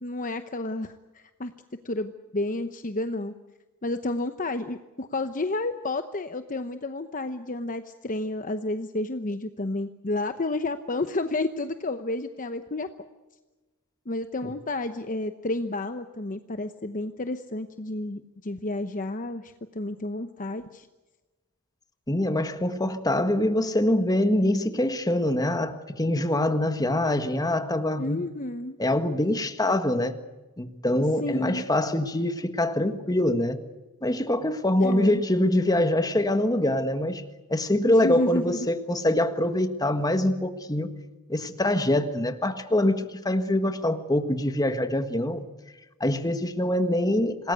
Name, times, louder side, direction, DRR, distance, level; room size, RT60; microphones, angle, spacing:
voice 1, 0.0-1.5 1.8-3.3 3.8-12.9 14.1-20.9 28.0-28.8 31.2-31.7 34.8-35.2 37.9-38.7, left 2 dB, 35° left, 9 dB, 0.9 m, -31 dB
voice 2, 22.1-28.2 28.8-30.1 30.6-33.6 34.0-37.2 37.5-40.9 41.3-45.4 46.0-47.5, left 1 dB, 15° left, 8 dB, 1.6 m, -24 dB
27.5 x 19.5 x 8.2 m, 1.2 s
head